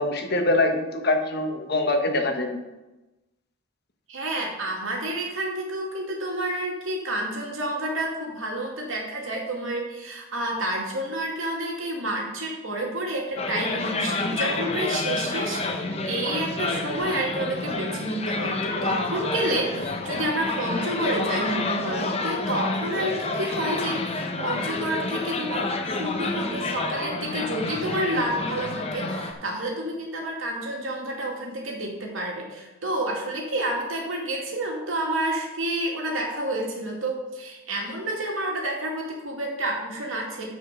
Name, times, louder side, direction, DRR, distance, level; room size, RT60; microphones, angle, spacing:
voice 1, 0.0-2.6, left 2 dB, 50° left, 4 dB, 1.2 m, -24 dB
voice 2, 4.1-40.5, right 1 dB, 85° right, -1 dB, 2.5 m, -29 dB
sound 1, 13.4-29.3, left 3 dB, 30° left, 0.8 m, -29 dB
10.0 x 5.1 x 6.7 m, 1.1 s
head